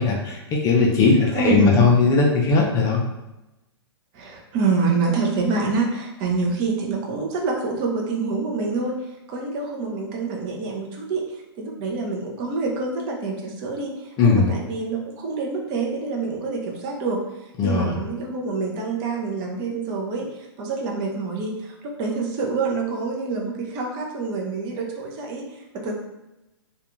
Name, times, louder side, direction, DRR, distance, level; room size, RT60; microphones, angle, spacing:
voice 1, 0.0-3.0 14.2-14.5 17.6-18.0, left 4 dB, 25° left, -1 dB, 0.5 m, -18 dB
voice 2, 1.3-1.9 4.1-17.2 17.6-25.9, right 4 dB, 35° right, 0 dB, 0.6 m, -26 dB
2.4 x 2.3 x 2.9 m, 0.97 s
hypercardioid pair, 125°, 14 cm